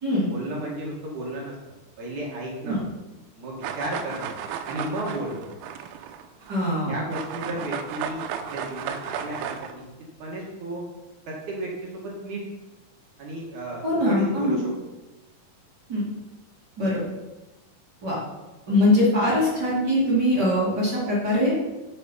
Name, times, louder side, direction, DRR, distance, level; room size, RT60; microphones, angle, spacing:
voice 1, 0.3-1.5 2.0-2.8 3.3-4.3 4.6-5.5 6.9-10.8 11.3-12.4 13.2-14.7, right 1 dB, 55° right, -2 dB, 2.4 m, -33 dB
sound 1, 3.6-6.8 7.1-9.7, right 8 dB, 85° right, 3.1 m, -34 dB
voice 2, 6.5-6.9 13.8-14.6 15.9-16.0 16.8-17.1 18.0-18.2 18.7-21.5, left 1 dB, 30° right, -6 dB, 2.1 m, -22 dB
7.9 x 7.3 x 5.6 m, 1.1 s
omnidirectional pair, 5.5 m